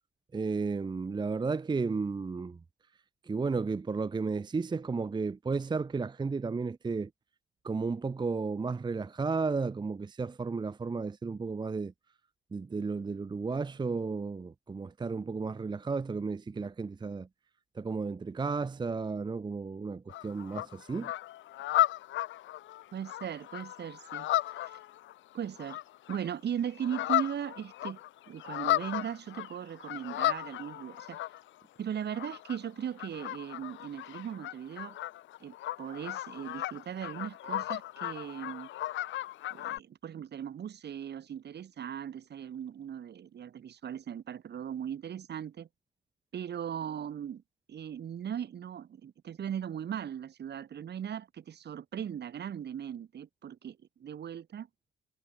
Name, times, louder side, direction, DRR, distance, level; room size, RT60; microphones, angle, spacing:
voice 1, 0.3-2.6 3.2-7.1 7.6-11.9 12.5-17.3 17.7-21.1, right 4 dB, 20° right, 0.7 m, -33 dB
sound 1, 20.1-26.3 26.6-31.6 32.0-39.8, left 14 dB, 75° left, 0.7 m, -35 dB
voice 2, 22.9-24.3 24.6-24.8 25.3-25.8 26.1-28.0 28.3-31.2 31.8-35.0 35.4-38.7 39.5-45.7 46.3-47.4 47.7-54.7, right 9 dB, 55° right, 2.8 m, -38 dB
cardioid pair, 90°, 20 cm